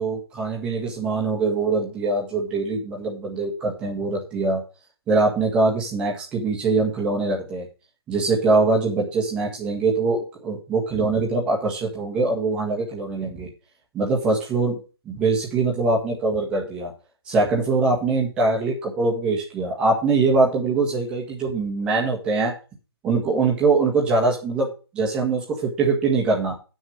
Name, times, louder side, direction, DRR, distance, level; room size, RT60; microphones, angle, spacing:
voice 1, 0.0-4.6 5.1-7.7 8.1-13.5 13.9-14.8 15.0-16.9 17.3-22.5 23.0-24.7 24.9-26.6, right 3 dB, 5° right, -2 dB, 1.7 m, -23 dB
9.7 x 6.4 x 6.4 m, 0.34 s
hypercardioid pair, 170°, 14 cm